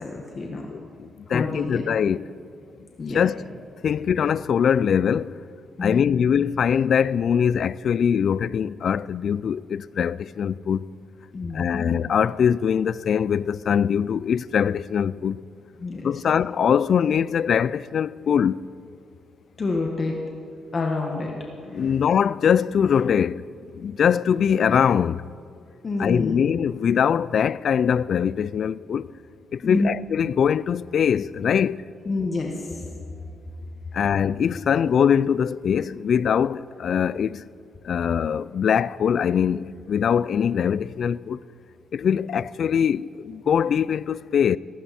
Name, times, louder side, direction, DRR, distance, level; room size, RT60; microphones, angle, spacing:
voice 1, 0.0-0.7 1.3-1.8 3.0-3.3 5.8-6.2 11.3-11.9 15.8-16.1 19.6-20.2 20.7-21.3 21.7-21.9 25.8-26.4 29.6-29.9 32.0-32.9, left 3 dB, 40° left, 1.7 m, -28 dB
voice 2, 0.7-2.2 3.1-3.5 3.8-5.4 5.8-10.9 11.5-15.4 16.0-18.7 21.7-23.5 23.7-25.3 26.0-29.1 29.5-31.8 33.9-37.5 37.8-41.4 41.9-44.6, left 8 dB, 60° left, 0.3 m, -22 dB
17.0 x 15.5 x 4.3 m
cardioid pair, 90°, 0 cm